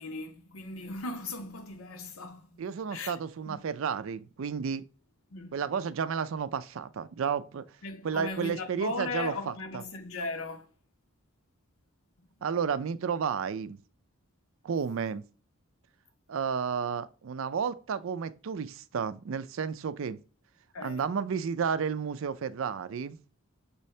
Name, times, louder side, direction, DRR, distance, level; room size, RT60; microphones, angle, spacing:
voice 1, 0.0-3.2 3.5-3.6 5.3-5.5 7.8-10.7 20.7-21.1, left 3 dB, 80° left, 0.8 m, -38 dB
voice 2, 2.6-4.8 5.5-7.6 8.0-9.8 12.4-13.8 14.6-15.2 16.3-20.2 20.8-23.2, right 6 dB, 70° right, 0.4 m, -32 dB
6.1 x 2.7 x 3.2 m
head